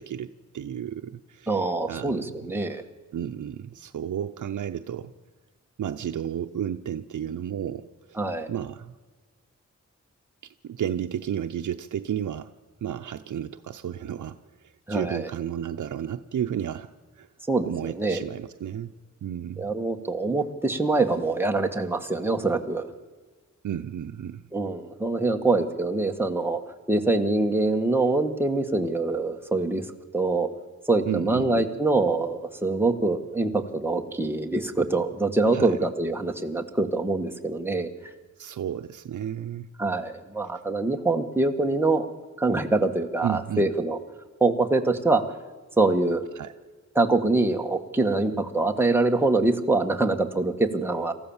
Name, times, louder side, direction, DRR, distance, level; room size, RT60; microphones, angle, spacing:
voice 1, 0.0-2.2 3.1-5.1 5.8-8.2 8.5-9.0 10.6-12.5 12.8-14.4 14.9-16.9 17.2-17.3 17.6-18.9 19.2-19.7 23.6-24.4 31.0-31.7 35.5-35.8 38.4-39.7 43.2-43.7 46.4-46.5, right 9 dB, 85° right, 6 dB, 0.7 m, -32 dB
voice 2, 1.5-2.8 8.2-8.5 14.9-15.3 17.5-18.2 19.6-22.9 24.5-26.6 26.9-29.8 30.1-30.5 30.9-38.1 39.8-42.1 42.4-44.0 44.4-45.2 45.8-46.2 46.9-51.1, right 2 dB, 5° right, 3 dB, 1.5 m, -24 dB
27.0 x 14.5 x 7.2 m, 1.4 s
wide cardioid pair, 150°, 30 cm